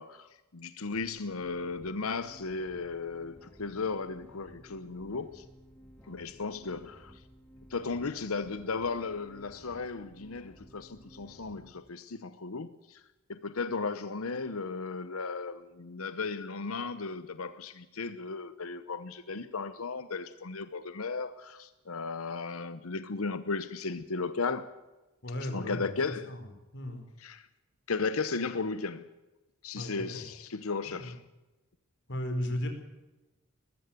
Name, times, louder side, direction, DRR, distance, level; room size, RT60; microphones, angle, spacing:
voice 1, 0.0-5.4 6.1-7.2 7.7-13.0 13.3-24.7 25.4-26.3 27.2-27.5 27.9-29.1 29.6-31.2, left 4 dB, 90° left, 0.9 m, -35 dB
sound 1, 0.9-11.7, equal, 5° left, 3.6 m, -55 dB
voice 2, 25.2-26.0 26.2-27.0 29.7-30.2 30.8-31.1 32.1-32.7, left 1 dB, 60° left, 4.7 m, -36 dB
20.0 x 15.0 x 9.2 m
head